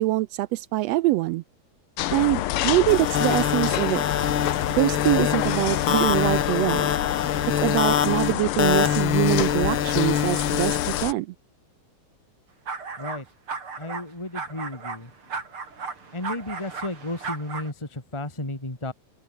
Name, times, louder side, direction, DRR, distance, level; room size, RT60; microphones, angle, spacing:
voice 1, 0.0-1.4 2.1-4.0 4.7-6.9 7.6-11.3, right 18 dB, 80° right, 1.5 m, -24 dB
sound 1, 2.0-11.1, left 14 dB, 70° left, 1.3 m, -28 dB
sound 2, 2.9-11.0, left 8 dB, 50° left, 2.1 m, -25 dB
sound 3, 12.7-13.2 13.5-14.0 14.3-17.7, right 4 dB, 45° right, 4.5 m, -35 dB
voice 2, 13.8-15.1 16.1-18.9, left 2 dB, 10° left, 3.2 m, -33 dB
open air
omnidirectional pair, 3.3 m